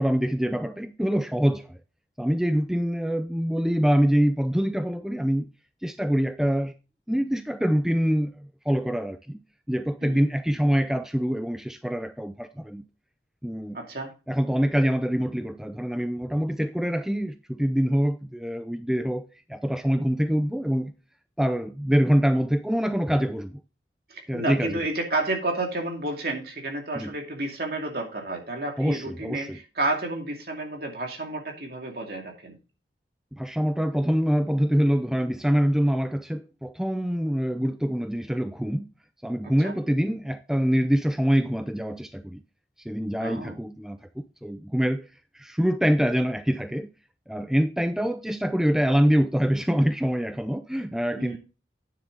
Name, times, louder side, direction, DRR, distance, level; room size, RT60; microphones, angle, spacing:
voice 1, 0.0-1.8 2.2-5.5 5.8-6.7 7.1-9.4 9.7-12.8 13.4-13.8 14.3-20.9 21.4-23.6 24.3-24.8 26.9-27.1 28.8-29.6 33.3-38.9 39.2-42.4 42.9-45.1 45.3-46.9 47.3-51.4, equal, 5° right, 0.3 m, -25 dB
voice 2, 13.7-14.1 24.1-32.6 39.4-39.7 43.2-43.6 51.2-51.4, right 2 dB, 60° right, 2.4 m, -31 dB
9.5 x 7.0 x 3.9 m
head